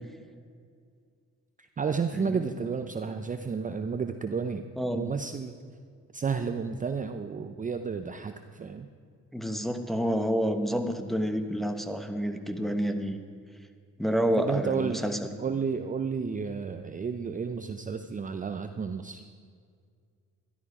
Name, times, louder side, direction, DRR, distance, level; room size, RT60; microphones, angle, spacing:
voice 1, 1.6-4.6 4.9-5.5 6.1-8.9 14.4-15.1 15.4-19.2, right 5 dB, 25° right, 7 dB, 0.6 m, -31 dB
voice 2, 4.8-5.1 9.3-13.2 14.0-15.2, equal, ahead, 5 dB, 1.1 m, -29 dB
13.0 x 11.5 x 4.8 m, 2.1 s
cardioid pair, 90°, 30 cm